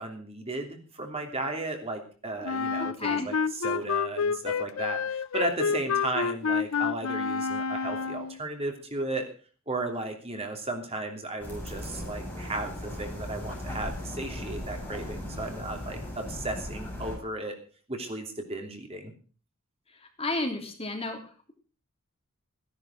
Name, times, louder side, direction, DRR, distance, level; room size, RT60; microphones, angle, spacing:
voice 1, 0.0-9.3 9.7-17.6 17.9-19.1, right 2 dB, 30° right, 3 dB, 3.0 m, -35 dB
Wind instrument woodwind instrument, 2.4-8.4, left 6 dB, 75° left, 0.6 m, -29 dB
voice 2, 2.8-3.3 20.2-21.2, left 2 dB, 30° left, 3 dB, 3.2 m, -32 dB
sound 1, 11.4-17.2, left 1 dB, 10° left, 6.5 m, -37 dB
16.0 x 11.0 x 6.1 m, 0.40 s
head